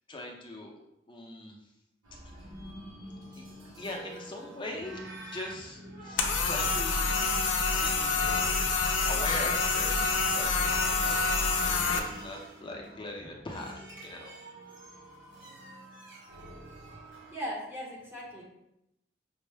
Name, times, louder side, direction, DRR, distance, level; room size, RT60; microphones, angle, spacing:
voice 1, 0.1-0.7 1.1-1.6 2.2-2.5 3.3-3.4 3.8-5.0 5.3-8.3 8.9-11.3 11.9-14.3, left 2 dB, 25° left, 0 dB, 0.5 m, -41 dB
sound 1, 2.0-17.3, right 1 dB, 85° right, 1.0 m, -47 dB
sound 2, 6.2-12.0, left 4 dB, 80° left, 0.5 m, -27 dB
voice 2, 17.1-18.4, equal, 10° right, -4 dB, 0.7 m, -39 dB
5.3 x 2.0 x 3.3 m, 0.86 s
head